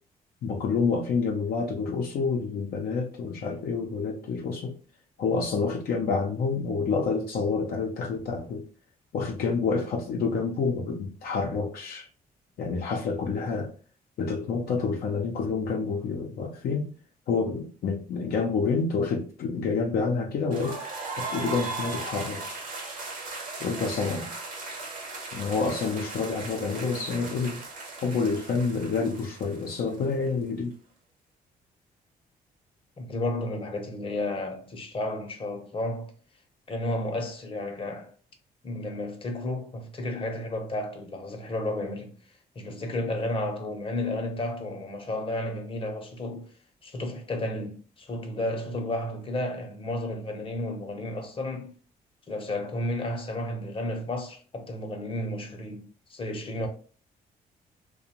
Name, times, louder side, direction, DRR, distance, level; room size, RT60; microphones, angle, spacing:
voice 1, 0.4-4.7 5.2-8.6 9.1-12.1 12.6-13.7 14.2-16.9 17.3-20.8 21.2-22.7 23.6-24.3 25.3-27.6 28.0-30.7, left 4 dB, 70° left, 0.5 m, -28 dB
sound 1, 20.5-30.3, right 3 dB, 55° right, 1.0 m, -37 dB
voice 2, 33.0-36.1 36.7-38.1 38.6-42.1 42.6-46.5 46.8-51.7 52.3-56.7, left 1 dB, 35° left, 0.8 m, -32 dB
2.5 x 2.2 x 2.9 m
cardioid pair, 75°, 16 cm